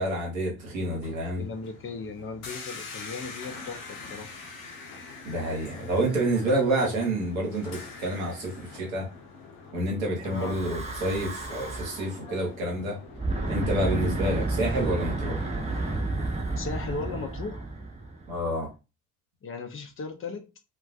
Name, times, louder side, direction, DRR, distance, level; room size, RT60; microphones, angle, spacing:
voice 1, 0.0-1.4 5.2-9.1 9.7-13.0 13.5-15.5 18.3-18.7, right 1 dB, 85° right, 0.8 m, -28 dB
sound 1, 0.6-14.9, left 4 dB, 70° left, 0.7 m, -45 dB
voice 2, 1.3-4.3 10.2-10.6 16.6-17.7 19.4-20.5, left 4 dB, 35° left, 0.6 m, -37 dB
Breathing / Wind, 10.2-12.2 13.1-18.5, right 2 dB, 15° right, 0.7 m, -31 dB
2.3 x 2.2 x 2.4 m
figure-of-eight pair, 45°, 39 cm